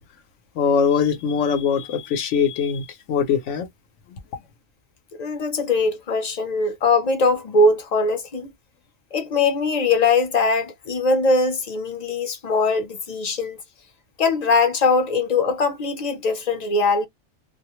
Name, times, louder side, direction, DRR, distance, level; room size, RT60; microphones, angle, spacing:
voice 1, 0.6-3.7, left 6 dB, 75° left, 0.9 m, -22 dB
voice 2, 5.2-8.5 9.1-13.6 14.2-17.1, left 3 dB, 45° left, 0.6 m, -21 dB
2.3 x 2.1 x 2.9 m
omnidirectional pair, 1.3 m